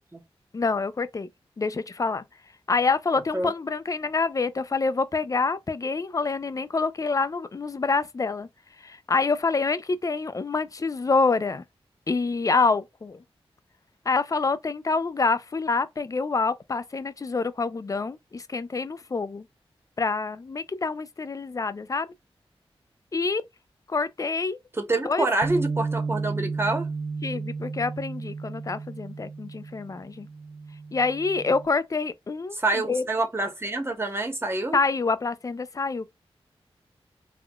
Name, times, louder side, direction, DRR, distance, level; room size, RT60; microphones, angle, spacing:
voice 1, 0.5-1.3 1.6-2.2 2.7-8.5 8.8-11.6 12.1-13.2 14.1-19.5 20.0-22.1 23.1-23.4 23.9-24.6 25.0-25.3 27.2-30.3 30.9-33.0 34.7-36.1, left 4 dB, 35° left, 0.4 m, -26 dB
voice 2, 24.8-26.9 32.5-34.8, right 2 dB, 25° right, 0.9 m, -27 dB
Bass guitar, 25.4-31.7, right 4 dB, 55° right, 0.4 m, -33 dB
3.5 x 2.2 x 2.3 m
cardioid pair, 65°, 10 cm